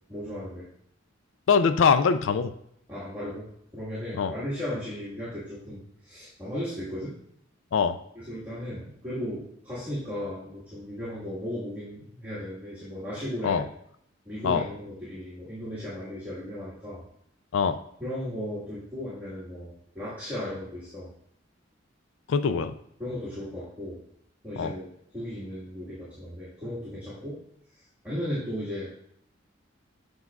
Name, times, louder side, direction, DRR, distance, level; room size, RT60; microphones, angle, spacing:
voice 1, 0.1-0.7 2.9-3.5 3.7-7.1 8.1-13.6 14.2-17.0 18.0-21.1 22.5-22.6 23.0-24.0 24.4-27.4 28.0-29.1, equal, 10° right, -11 dB, 1.5 m, -36 dB
voice 2, 1.5-2.5 4.1-4.3 7.7-8.0 13.4-13.6 14.4-14.6 17.5-17.8 22.3-22.7 24.6-24.7, left 6 dB, 75° left, 11 dB, 0.4 m, -23 dB
7.9 x 5.2 x 2.3 m, 0.71 s
head